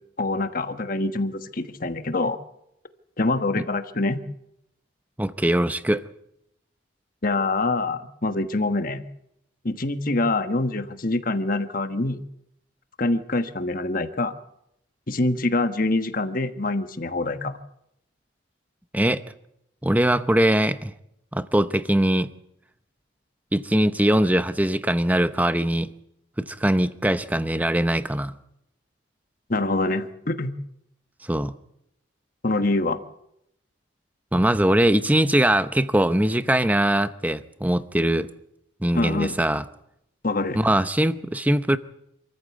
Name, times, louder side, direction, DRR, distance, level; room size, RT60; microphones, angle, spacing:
voice 1, 0.2-2.4 3.2-4.2 7.2-9.0 9.6-12.2 13.0-14.3 15.1-17.5 29.5-30.5 32.4-33.0 38.9-39.3 40.2-40.6, left 2 dB, 45° left, 1.3 m, -25 dB
voice 2, 5.2-6.0 18.9-19.2 19.8-20.9 21.3-22.3 23.5-25.9 26.4-28.3 31.3-31.5 34.3-38.3 38.8-39.6 40.5-41.8, right 1 dB, 10° right, 0.7 m, -21 dB
27.0 x 14.5 x 8.3 m
head